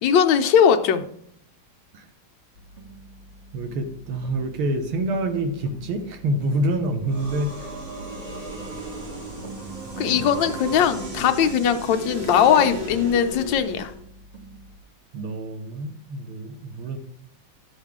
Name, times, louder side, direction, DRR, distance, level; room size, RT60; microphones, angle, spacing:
voice 1, 0.0-1.1 10.0-13.9, left 8 dB, 70° left, 7 dB, 1.3 m, -19 dB
sound 1, 2.5-14.8, right 2 dB, 35° right, 1.7 m, -46 dB
voice 2, 3.5-7.8 10.1-10.2 15.1-17.0, right 1 dB, 85° right, 6 dB, 2.0 m, -27 dB
sound 2, 7.1-14.0, right 1 dB, 60° right, 3.0 m, -35 dB
11.5 x 7.3 x 3.6 m, 0.67 s
omnidirectional pair, 2.3 m